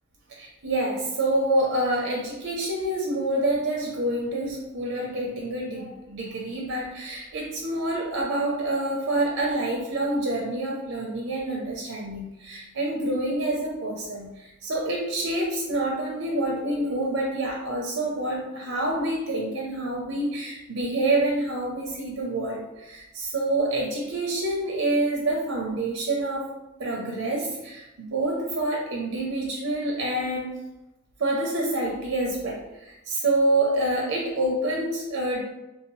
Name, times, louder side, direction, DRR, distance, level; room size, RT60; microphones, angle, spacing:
voice 1, 0.3-26.5 26.8-30.5 31.2-35.4, right 1 dB, 75° right, -2 dB, 0.6 m, -27 dB
3.1 x 2.7 x 3.0 m, 0.98 s
head